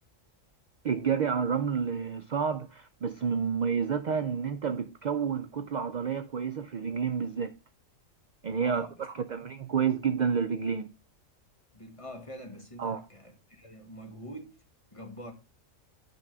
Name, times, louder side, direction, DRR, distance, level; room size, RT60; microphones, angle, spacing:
voice 1, 0.8-7.5 8.4-10.9 12.8-13.0, right 6 dB, 55° right, 0.5 m, -30 dB
voice 2, 8.6-9.4 11.7-14.6 14.9-15.3, equal, 25° left, 1.5 m, -45 dB
9.2 x 3.6 x 6.7 m
omnidirectional pair, 1.4 m